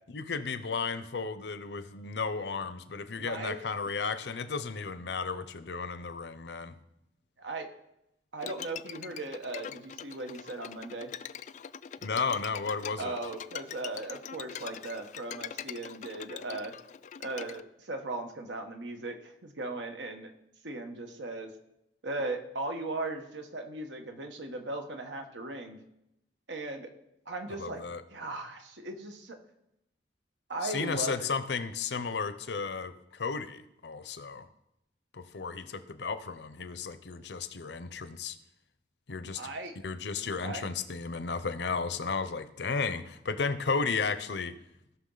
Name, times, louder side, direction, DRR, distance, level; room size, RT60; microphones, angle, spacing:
voice 1, 0.1-6.8 12.0-13.2 27.6-28.0 30.6-34.5 35.1-38.4 39.1-39.4 39.8-44.6, left 5 dB, 70° left, 12 dB, 0.7 m, -34 dB
voice 2, 3.2-3.6 7.4-7.7 8.3-11.1 13.0-16.7 17.2-20.3 20.6-21.5 22.0-25.8 26.5-26.9 27.3-27.8 28.1-29.4 30.5-31.1 39.4-39.7 40.2-40.7, right 2 dB, 90° right, 5 dB, 1.3 m, -38 dB
Bowed string instrument, 8.4-17.6, left 8 dB, 45° left, 0.3 m, -43 dB
16.5 x 6.0 x 3.9 m, 0.84 s
head